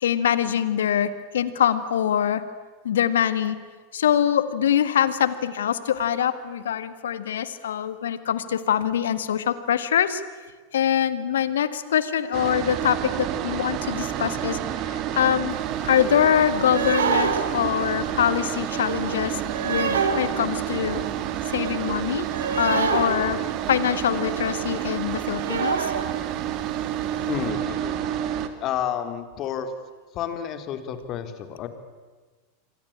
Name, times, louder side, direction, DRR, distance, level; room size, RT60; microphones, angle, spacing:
voice 1, 0.0-2.4 2.8-3.6 3.9-10.2 10.7-15.5 15.8-21.0 21.5-23.4 23.7-25.9, left 9 dB, 75° left, 13 dB, 1.8 m, -24 dB
sound 1, 12.3-28.5, right 11 dB, 45° right, 2.5 m, -29 dB
sound 2, 15.6-15.7 15.8-16.2 16.6-24.0 24.3-24.5 24.9-25.0 25.1-26.4 26.8-26.9 27.3-27.4, right 6 dB, 80° right, 2.5 m, -28 dB
voice 2, 27.3-28.0 28.6-29.7 30.1-31.7, left 9 dB, 40° left, 9 dB, 3.3 m, -30 dB
28.0 x 24.0 x 8.8 m, 1.4 s
hypercardioid pair, 90°, 0 cm